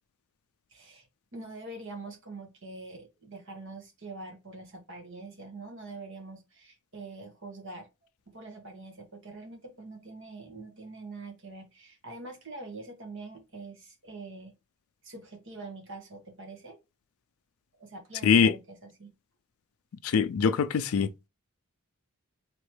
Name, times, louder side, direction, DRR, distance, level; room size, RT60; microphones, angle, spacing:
voice 1, 0.7-7.9 8.3-14.5 15.0-16.8 17.8-19.1, right 3 dB, 60° right, 1.3 m, -44 dB
voice 2, 18.2-18.5 20.0-21.3, left 6 dB, 75° left, 0.4 m, -23 dB
4.5 x 3.0 x 3.2 m
head